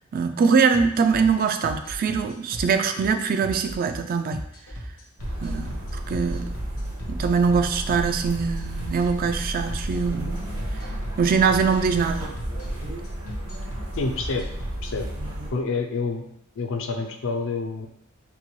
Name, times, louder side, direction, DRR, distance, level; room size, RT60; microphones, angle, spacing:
voice 1, 0.1-4.4 5.4-6.5 7.1-10.3 11.2-12.3, right 5 dB, 40° right, 7 dB, 0.3 m, -23 dB
sound 1, 0.7-15.0, equal, 90° left, 1.2 m, -36 dB
sound 2, 5.2-15.5, right 1 dB, 70° right, 1.3 m, -32 dB
voice 2, 14.0-14.5 14.8-15.1 15.5-16.2 16.6-17.9, left 4 dB, 65° left, 4 dB, 0.5 m, -28 dB
5.3 x 2.2 x 3.1 m, 0.72 s
head